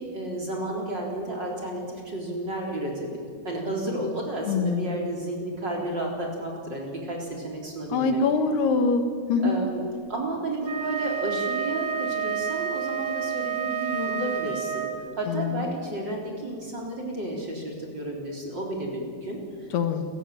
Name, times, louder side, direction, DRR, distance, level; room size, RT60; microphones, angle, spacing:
voice 1, 0.0-8.2 9.4-9.8 10.1-19.7, right 1 dB, 25° right, 0 dB, 4.0 m, -32 dB
voice 2, 4.5-5.0 7.9-9.0 9.3-9.6 15.3-15.5 19.7-20.0, left 4 dB, 75° left, 7 dB, 3.5 m, -23 dB
Wind instrument woodwind instrument, 10.6-15.2, right 7 dB, 85° right, 1.0 m, -30 dB
29.0 x 15.0 x 9.0 m, 2.1 s
omnidirectional pair, 4.8 m